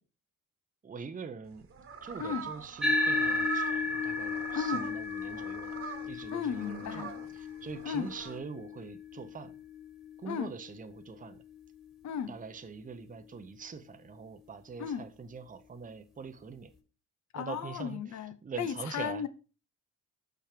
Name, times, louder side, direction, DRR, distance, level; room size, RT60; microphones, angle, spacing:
voice 1, 0.8-1.7 2.0-5.7 6.0-7.1 7.4-9.5 10.2-11.4 12.3-16.7 17.3-18.0 18.4-19.2, right 5 dB, 25° right, 0.8 m, -43 dB
sound 1, 1.4-8.4, right 7 dB, 45° right, 1.5 m, -43 dB
voice 2, 2.2-2.5 4.5-4.9 6.3-7.1 7.8-8.1 10.3-10.5 12.0-12.3 14.8-15.1 17.3-19.3, left 7 dB, 65° left, 0.9 m, -35 dB
sound 2, 2.8-11.5, left 3 dB, ahead, 1.6 m, -34 dB
6.2 x 5.8 x 5.1 m
cardioid pair, 90°, 30 cm